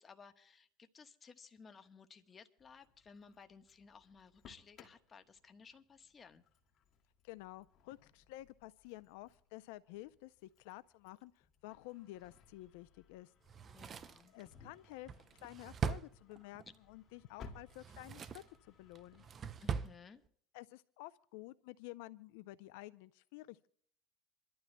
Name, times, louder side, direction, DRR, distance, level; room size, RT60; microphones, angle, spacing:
voice 1, 0.0-6.4 13.7-14.3 19.6-20.2, left 5 dB, 25° left, 8 dB, 1.2 m, -58 dB
Engine starting, 2.6-19.5, left 4 dB, 45° left, 2.2 m, -62 dB
voice 2, 7.2-13.3 13.7-13.9 14.3-19.3 20.5-23.7, left 17 dB, 80° left, 15 dB, 0.4 m, -51 dB
Drawer open or close, 13.5-16.8 17.6-18.6 18.9-20.0 20.3-20.4, right 6 dB, 30° right, 0.5 m, -41 dB
27.5 x 12.5 x 2.2 m, 0.63 s
supercardioid pair, 120°, 0 cm